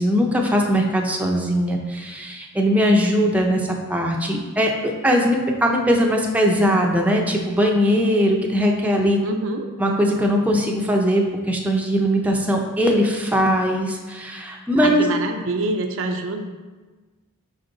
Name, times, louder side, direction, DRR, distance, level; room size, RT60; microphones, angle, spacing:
voice 1, 0.0-9.2 9.8-15.0, equal, 5° right, 0 dB, 0.5 m, -20 dB
voice 2, 9.2-9.7 14.7-16.4, right 2 dB, 60° right, 5 dB, 0.5 m, -25 dB
5.3 x 5.2 x 3.9 m, 1.3 s
head